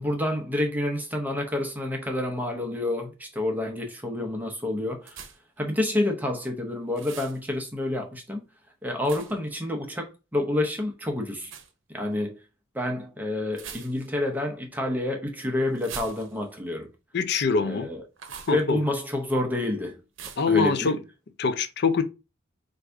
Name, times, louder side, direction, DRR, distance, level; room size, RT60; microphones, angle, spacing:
voice 1, 0.0-5.2 5.6-8.4 8.8-11.5 11.9-12.4 12.7-16.9 17.6-18.0 18.5-20.0 20.5-21.0, left 1 dB, 10° right, 0.7 m, -28 dB
sound 1, 5.1-5.6 6.9-7.4 9.1-9.5 11.4-11.7 13.5-14.2 15.8-16.6 18.2-18.6 20.2-20.6, right 7 dB, 75° right, 0.7 m, -42 dB
voice 2, 17.1-17.9 18.5-18.8 20.4-21.0 21.4-22.0, left 5 dB, 60° left, 0.5 m, -24 dB
4.7 x 2.6 x 3.4 m
head